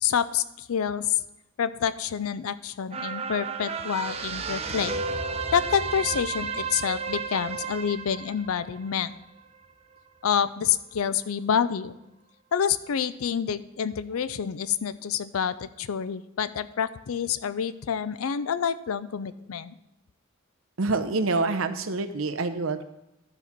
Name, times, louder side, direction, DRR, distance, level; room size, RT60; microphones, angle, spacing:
voice 1, 0.0-1.2 1.6-5.0 5.5-9.2 10.2-11.9 12.5-19.8, left 8 dB, 85° left, 15 dB, 0.4 m, -28 dB
sound 1, 2.9-9.6 10.0-10.1, right 5 dB, 30° right, 0.6 m, -33 dB
voice 2, 20.8-22.8, right 3 dB, 70° right, 8 dB, 0.7 m, -26 dB
12.0 x 4.1 x 5.9 m, 0.90 s
head